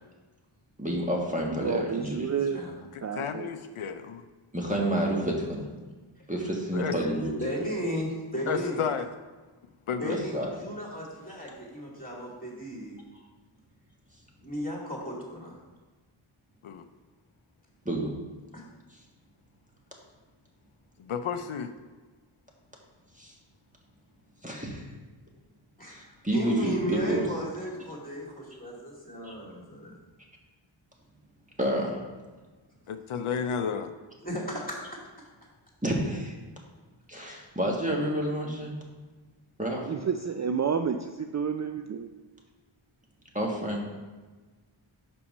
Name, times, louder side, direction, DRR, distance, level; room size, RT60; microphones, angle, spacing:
voice 1, 0.8-2.3 4.5-5.7 6.3-7.3 10.1-10.5 17.8-18.1 23.2-23.3 24.4-24.8 25.9-27.2 29.2-29.3 31.6-32.0 35.8-36.3 37.1-38.7 39.6-39.8 43.3-43.8, right 1 dB, 15° right, -1 dB, 1.5 m, -29 dB
voice 2, 1.6-2.6 3.0-3.5 39.8-41.0 41.3-42.1, right 6 dB, 40° right, 6 dB, 0.4 m, -29 dB
voice 3, 2.9-4.2 6.7-7.0 8.5-9.1 9.9-10.2 16.6-16.8 21.0-21.7 32.9-33.9, left 6 dB, 80° left, 9 dB, 0.6 m, -32 dB
voice 4, 7.4-8.8 10.0-13.0 14.4-15.6 18.5-18.6 25.8-25.9 26.3-29.9 34.2-34.8, equal, 15° left, -3 dB, 2.4 m, -35 dB
5.7 x 5.4 x 5.4 m, 1.3 s
wide cardioid pair, 45°, 49 cm